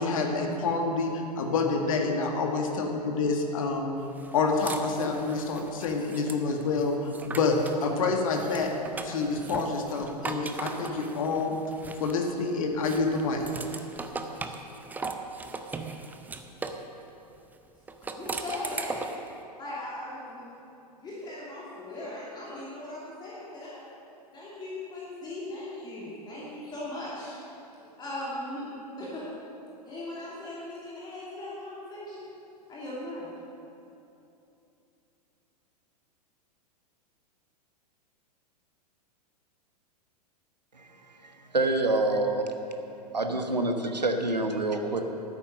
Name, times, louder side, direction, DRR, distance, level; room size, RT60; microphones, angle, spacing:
voice 1, 0.0-3.9 4.3-8.7 9.0-11.5 12.0-13.4, left 3 dB, 55° left, 3 dB, 1.8 m, -27 dB
sound 1, 4.2-7.8 8.3-12.4 12.8-16.9 17.9-19.3, right 3 dB, 10° right, 0.6 m, -39 dB
voice 2, 18.1-19.1 19.6-20.4 21.0-23.8 24.3-27.4 28.0-29.2 29.9-32.2 32.7-33.3, left 1 dB, 20° left, -7 dB, 2.9 m, -38 dB
voice 3, 41.2-42.4 43.1-45.0, right 2 dB, 80° right, 5 dB, 1.2 m, -26 dB
12.5 x 9.6 x 6.5 m, 2.8 s
figure-of-eight pair, 100°, 21 cm